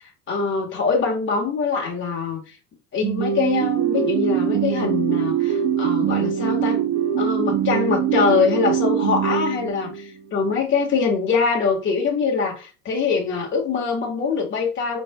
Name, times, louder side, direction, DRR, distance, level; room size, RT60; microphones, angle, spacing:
voice 1, 0.3-2.5 2.9-6.8 7.2-15.0, left 5 dB, 30° left, 1.5 m, -23 dB
sound 1, 3.0-10.2, right 9 dB, 40° right, 0.5 m, -22 dB
5.0 x 3.4 x 2.2 m
supercardioid pair, 95°, 37 cm